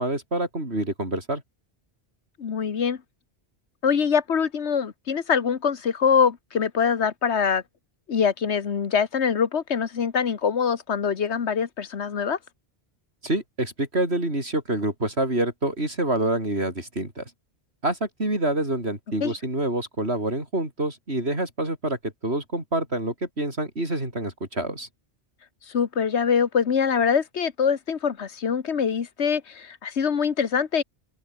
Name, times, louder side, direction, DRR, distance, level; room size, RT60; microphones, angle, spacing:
voice 1, 0.0-1.4 13.2-17.2 17.8-24.9, right 1 dB, 70° right, 6.5 m, -27 dB
voice 2, 2.4-3.0 3.8-7.6 8.1-12.4 19.2-19.3 25.7-30.8, left 6 dB, 85° left, 1.5 m, -24 dB
open air
omnidirectional pair, 1.1 m